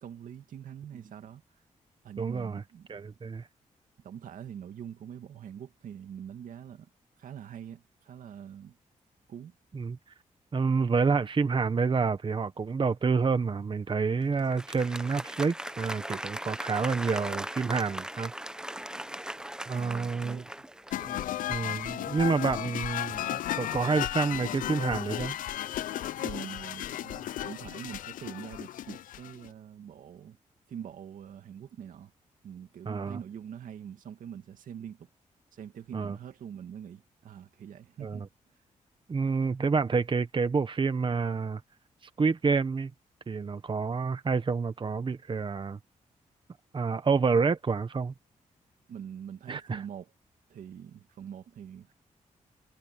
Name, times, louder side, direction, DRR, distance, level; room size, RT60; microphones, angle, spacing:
voice 1, 0.0-1.4 2.0-2.9 4.0-6.9 7.2-8.8 9.3-9.5 19.7-20.4 26.2-30.4 30.7-32.1 32.4-35.1 35.5-38.3 48.9-50.1 50.5-51.9, right 8 dB, 80° right, 2.2 m, -44 dB
voice 2, 2.2-2.6 2.9-3.5 9.7-10.0 10.5-18.3 19.7-20.4 21.5-25.3 32.9-33.2 35.9-36.2 38.0-38.3 39.1-41.6 42.2-42.9 43.3-45.8 46.7-48.1 49.5-49.8, right 5 dB, 40° right, 1.1 m, -28 dB
Applause, 14.4-21.4, right 1 dB, 5° right, 0.9 m, -39 dB
sound 1, 20.9-29.5, left 12 dB, 90° left, 0.5 m, -34 dB
cardioid pair, 80°, 14 cm